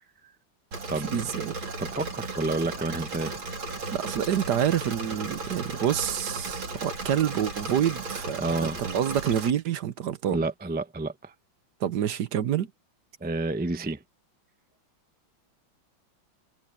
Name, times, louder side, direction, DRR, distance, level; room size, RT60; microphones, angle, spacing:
Engine / Mechanisms, 0.7-9.5, right 3 dB, 80° right, 4.0 m, -35 dB
voice 1, 1.1-1.6 3.9-10.4 11.8-12.7, right 10 dB, 65° right, 1.3 m, -27 dB
voice 2, 1.8-3.4 8.4-8.8 10.3-11.3 13.2-14.0, right 2 dB, 15° right, 0.4 m, -30 dB
omnidirectional pair, 2.2 m